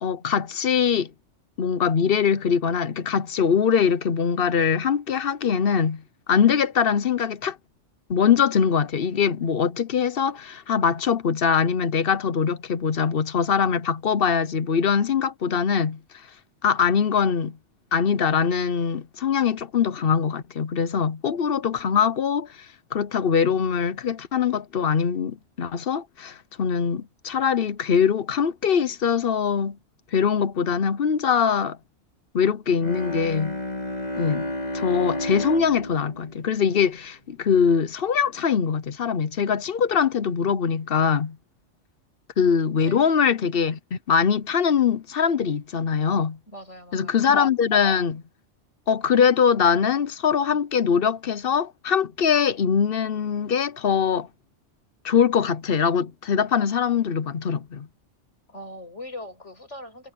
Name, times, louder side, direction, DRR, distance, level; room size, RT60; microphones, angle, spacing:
voice 1, 0.0-1.1 1.6-6.0 6.3-7.6 8.1-16.0 16.6-17.6 17.9-22.5 22.9-29.8 30.1-31.8 32.3-33.6 34.2-41.4 42.4-46.4 46.9-48.2 48.9-54.3 55.0-57.9, left 7 dB, 55° left, 1.0 m, -22 dB
Bowed string instrument, 32.7-37.6, left 1 dB, 35° left, 5.9 m, -32 dB
voice 2, 46.5-47.3 58.5-60.1, left 1 dB, 70° left, 7.0 m, -41 dB
omnidirectional pair, 1.2 m